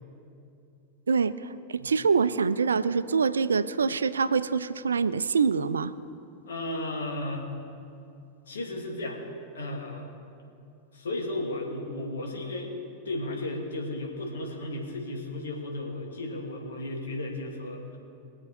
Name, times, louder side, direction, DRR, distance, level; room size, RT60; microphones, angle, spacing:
voice 1, 1.1-5.9, right 5 dB, 70° right, 14 dB, 0.4 m, -25 dB
voice 2, 6.5-7.5 8.5-9.2 9.5-10.1 10.9-12.7 13.0-18.0, left 1 dB, 65° left, -1 dB, 2.6 m, -34 dB
23.0 x 7.9 x 4.5 m, 2.6 s
figure-of-eight pair, 90°, 0 cm